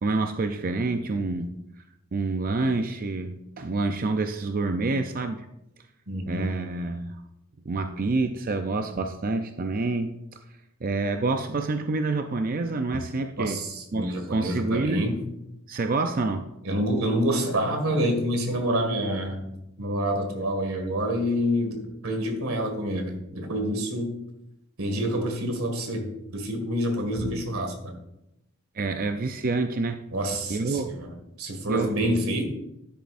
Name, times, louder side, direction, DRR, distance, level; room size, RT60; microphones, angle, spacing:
voice 1, 0.0-1.5 2.1-5.5 6.3-7.2 7.7-10.1 10.8-13.6 13.9-15.1 15.7-16.5 27.2-27.5 28.8-30.0 30.5-30.9 31.7-32.0, right 3 dB, 45° right, 6 dB, 0.5 m, -27 dB
voice 2, 6.1-6.5 13.4-15.2 16.6-19.4 19.8-24.1 24.8-28.0 30.1-32.4, equal, 85° right, 4 dB, 2.0 m, -27 dB
12.5 x 10.5 x 2.6 m, 0.87 s
head